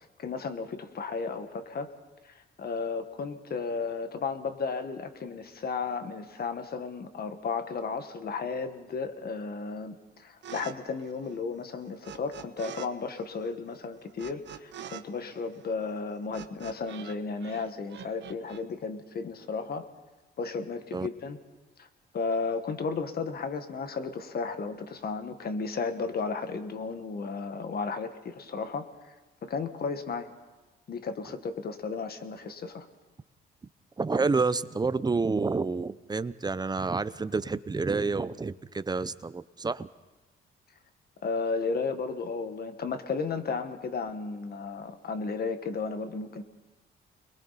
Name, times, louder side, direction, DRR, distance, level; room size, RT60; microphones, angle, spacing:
voice 1, 0.2-1.9 2.6-19.9 20.4-21.4 21.8-21.9 22.1-28.9 29.4-30.3 30.9-32.9 41.2-46.4, left 4 dB, 50° left, 8 dB, 1.7 m, -34 dB
sound 1, 10.4-10.7 11.0-12.9 13.1-17.2 17.4-18.6, right 9 dB, 65° right, 1.1 m, -45 dB
voice 2, 34.0-39.9, right 4 dB, 20° right, 14 dB, 0.7 m, -29 dB
30.0 x 22.0 x 4.2 m, 1.1 s
cardioid pair, 90°, 20 cm